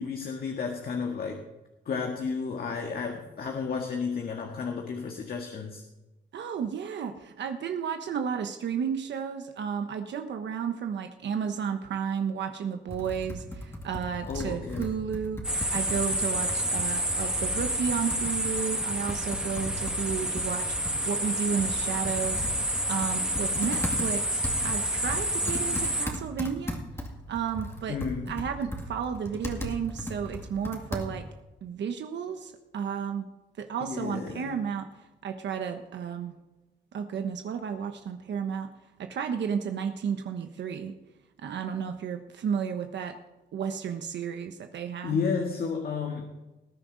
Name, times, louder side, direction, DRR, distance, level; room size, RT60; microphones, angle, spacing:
voice 1, 0.0-1.4 1.8-5.8 14.3-14.9 27.9-28.4 33.8-34.6 45.0-46.2, left 5 dB, 55° left, 2 dB, 1.7 m, -32 dB
voice 2, 6.3-22.5 22.9-26.8 27.3-28.0 28.3-31.2 31.6-33.2 33.6-36.3 36.9-38.7 39.1-40.9 41.4-43.2 43.5-45.2, right 7 dB, 75° right, 6 dB, 1.1 m, -32 dB
Computer keyboard, 12.9-31.4, left 1 dB, 15° left, 2.2 m, -38 dB
sound 1, 15.4-26.1, right 1 dB, 5° right, 1.8 m, -29 dB
19.5 x 10.0 x 4.0 m, 1.0 s
wide cardioid pair, 130°, 19 cm